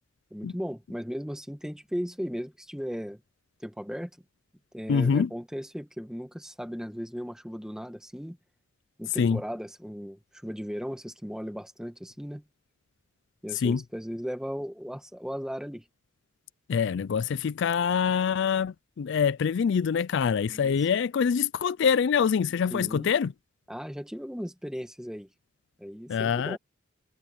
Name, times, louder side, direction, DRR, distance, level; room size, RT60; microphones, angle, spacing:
voice 1, 0.3-3.2 3.6-4.1 4.7-8.4 9.0-12.4 13.4-15.8 20.5-20.8 22.7-23.1 23.7-25.3 25.8-26.6, equal, 5° right, 1.9 m, -36 dB
voice 2, 4.9-5.3 9.2-9.4 13.5-13.8 16.7-23.3 26.1-26.6, left 6 dB, 60° left, 0.4 m, -25 dB
head